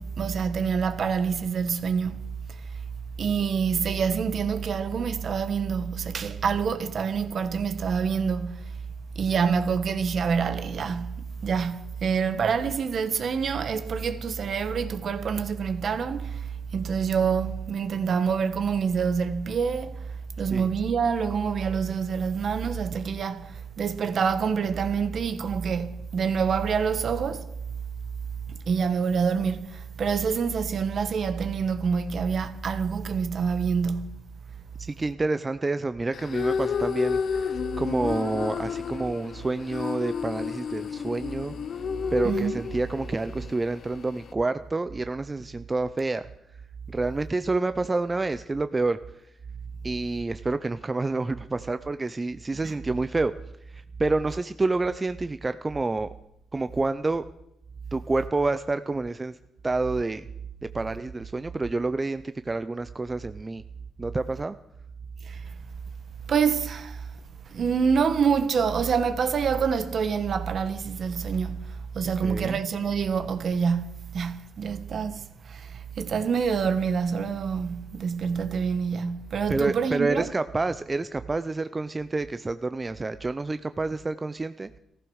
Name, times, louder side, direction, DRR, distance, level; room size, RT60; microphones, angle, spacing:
voice 1, 0.0-2.6 3.2-8.7 9.1-20.1 20.4-27.5 28.5-34.2 42.2-42.6 52.6-52.7 65.2-65.5 66.3-67.1 67.5-80.3, right 6 dB, 55° right, 1.4 m, -27 dB
voice 2, 34.8-41.5 42.1-46.3 46.9-49.0 49.8-53.3 53.7-56.1 56.5-57.2 57.9-59.4 59.6-60.3 60.7-63.6 64.0-64.6 72.2-72.6 79.5-84.8, right 3 dB, 20° right, 0.6 m, -28 dB
sound 1, 36.1-44.3, left 6 dB, 55° left, 0.6 m, -31 dB
16.0 x 14.5 x 6.4 m
cardioid pair, 90°, 0 cm